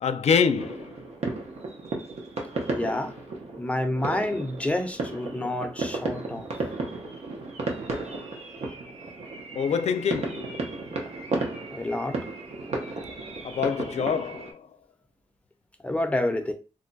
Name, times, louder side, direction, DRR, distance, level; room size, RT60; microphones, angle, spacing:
voice 1, 0.0-0.9 9.6-10.6 13.4-14.7, left 6 dB, 90° left, 0.4 m, -25 dB
sound 1, 0.5-14.5, right 2 dB, 85° right, 0.7 m, -34 dB
voice 2, 2.7-3.1 3.6-6.5 11.7-12.2 15.8-16.5, left 1 dB, 10° left, 0.5 m, -28 dB
2.5 x 2.2 x 3.8 m
wide cardioid pair, 150°, 11 cm